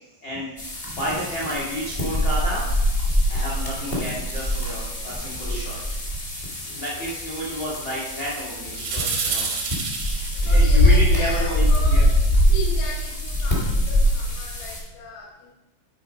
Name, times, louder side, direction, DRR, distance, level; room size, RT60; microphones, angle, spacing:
voice 1, 0.2-0.5 0.8-2.6 3.3-5.8 6.6-9.5 9.9-12.1, equal, 65° left, -5 dB, 1.1 m, -31 dB
sound 1, 0.6-14.8, equal, 40° left, 0.7 m, -23 dB
sound 2, 4.3-5.2 8.7-10.7, right 5 dB, 90° right, 1.3 m, -29 dB
voice 2, 10.4-12.1 12.5-15.5, left 3 dB, 80° left, -5 dB, 4.0 m, -37 dB
10.0 x 4.6 x 5.1 m, 1.0 s
omnidirectional pair, 5.1 m